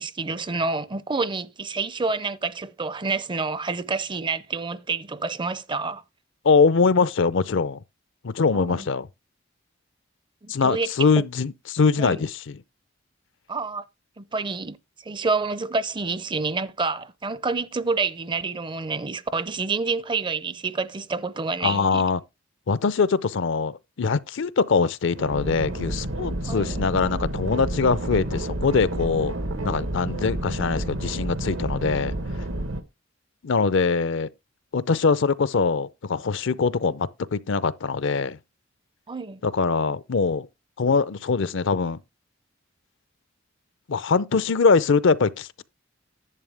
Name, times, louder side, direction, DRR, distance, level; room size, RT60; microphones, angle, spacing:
voice 1, 0.0-6.0 8.5-8.9 10.4-10.9 11.2-11.3 12.0-12.2 13.5-13.8 14.2-14.8 15.0-22.0 26.4-26.9 29.8-29.9 39.1-39.4, right 4 dB, 25° right, 0.5 m, -28 dB
voice 2, 6.4-7.8 8.2-9.1 10.5-12.6 21.6-22.2 22.7-29.3 29.6-32.1 33.4-34.3 34.7-38.4 39.4-40.5 40.8-42.0 43.9-45.6, left 4 dB, 65° left, 0.5 m, -22 dB
sound 1, 25.1-32.8, right 1 dB, 80° right, 1.2 m, -30 dB
11.0 x 8.3 x 3.4 m
head